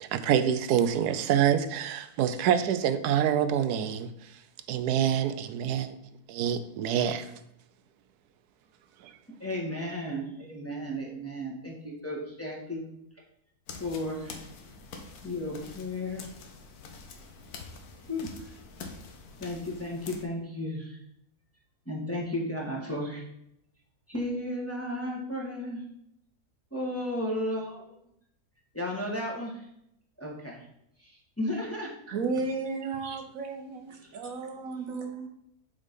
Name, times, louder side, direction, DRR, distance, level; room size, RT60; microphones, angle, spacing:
voice 1, 0.0-4.1 4.7-5.9 6.3-7.3, right 9 dB, 90° right, 1.1 m, -26 dB
voice 2, 9.4-12.8 13.8-14.4 15.2-16.2 18.1-18.3 19.4-21.0 21.8-23.2 24.1-25.8 26.7-27.8 28.7-29.7 30.2-30.6 31.0-31.9, left 1 dB, 10° left, 1.4 m, -34 dB
sound 1, 13.7-20.2, left 4 dB, 80° left, 1.4 m, -46 dB
voice 3, 32.1-35.3, right 4 dB, 65° right, 1.1 m, -33 dB
7.3 x 3.9 x 5.2 m
omnidirectional pair, 1.6 m